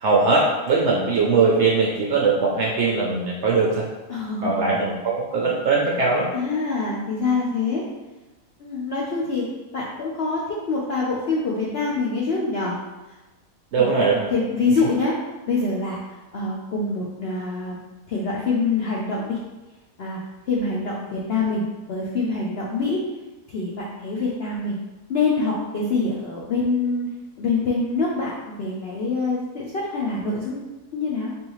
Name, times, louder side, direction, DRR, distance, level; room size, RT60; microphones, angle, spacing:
voice 1, 0.0-3.8 4.4-6.3 13.7-14.3, right 4 dB, 65° right, -3 dB, 0.7 m, -20 dB
voice 2, 4.1-4.5 6.3-7.8 8.6-9.5 9.7-12.8 13.8-13.9 14.3-15.2 15.5-16.0 16.3-17.8 18.1-19.4 20.0-20.2 20.5-23.0 23.5-23.7 24.0-24.8 25.1-27.1 27.4-28.3 28.6-30.6 30.9-31.3, left 3 dB, 70° left, -4 dB, 0.6 m, -25 dB
3.5 x 3.4 x 3.0 m, 1.1 s
omnidirectional pair, 1.7 m